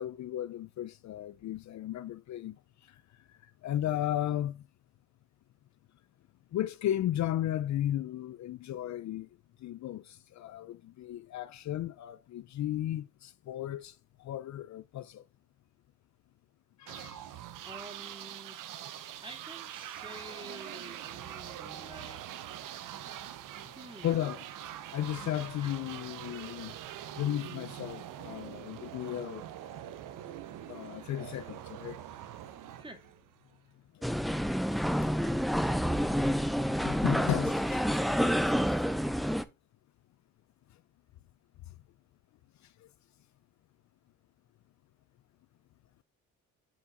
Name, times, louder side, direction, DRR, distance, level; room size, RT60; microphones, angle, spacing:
voice 1, 0.0-2.6 2.8-3.0 3.4-4.6 6.5-9.3 9.6-15.2 16.8-17.2 24.0-26.8 27.2-29.4 30.7-32.0 33.9-34.1 35.1-35.4 36.2-36.3 36.8-38.0 42.8-42.9, left 12 dB, 60° left, 0.5 m, -35 dB
sound 1, 16.9-33.6, right 11 dB, 75° right, 0.9 m, -44 dB
voice 2, 17.6-18.6 19.2-22.2 23.8-24.1 25.6-25.7 32.8-33.1, right 1 dB, 15° right, 2.6 m, -49 dB
sound 2, 34.0-39.4, equal, ahead, 0.6 m, -28 dB
10.0 x 4.5 x 2.5 m
supercardioid pair, 70°, 32 cm